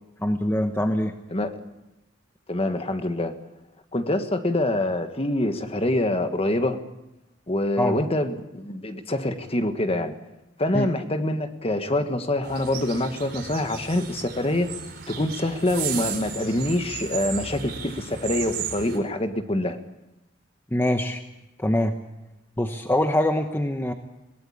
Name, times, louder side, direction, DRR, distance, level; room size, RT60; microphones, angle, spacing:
voice 1, 0.2-1.1 7.8-8.0 10.7-10.9 20.7-21.2 21.6-22.0 22.6-23.9, left 1 dB, 10° left, 6 dB, 1.0 m, -23 dB
voice 2, 2.5-3.4 3.9-6.8 7.5-10.1 10.6-14.7 15.1-19.8, left 1 dB, 30° left, 8 dB, 1.5 m, -25 dB
sound 1, 12.4-19.0, right 7 dB, 55° right, 4.0 m, -35 dB
22.0 x 18.0 x 8.6 m, 0.97 s
head